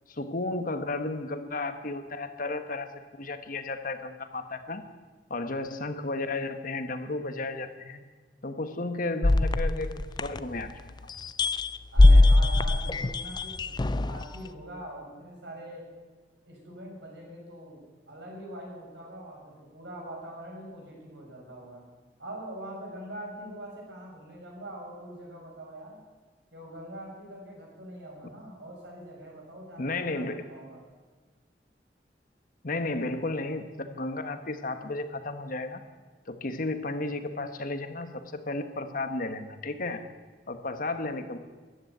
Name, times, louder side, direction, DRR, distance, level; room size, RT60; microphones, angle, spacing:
voice 1, 0.1-4.8 5.3-8.0 8.4-10.7 11.0-11.1 29.8-30.5 32.6-35.8 36.3-40.0 40.5-41.4, left 2 dB, 50° left, 8 dB, 1.3 m, -33 dB
sound 1, 9.2-10.8 11.2-14.2, left 2 dB, 25° left, 0.4 m, -21 dB
voice 2, 11.9-13.7 14.0-15.8 16.4-21.8 22.2-26.0 26.5-30.9, right 1 dB, 85° right, -2 dB, 6.8 m, -43 dB
14.0 x 11.0 x 9.4 m, 1.4 s
head